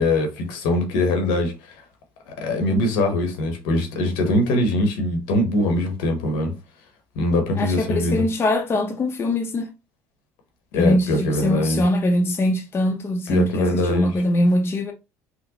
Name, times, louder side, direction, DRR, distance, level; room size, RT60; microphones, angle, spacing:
voice 1, 0.0-1.5 2.3-6.5 7.1-8.2 10.7-11.8 13.3-14.1, left 1 dB, 75° left, 1.0 m, -22 dB
voice 2, 7.6-9.7 10.8-14.9, left 1 dB, 30° left, 0.7 m, -22 dB
3.8 x 2.1 x 2.8 m
hypercardioid pair, 75°, 8 cm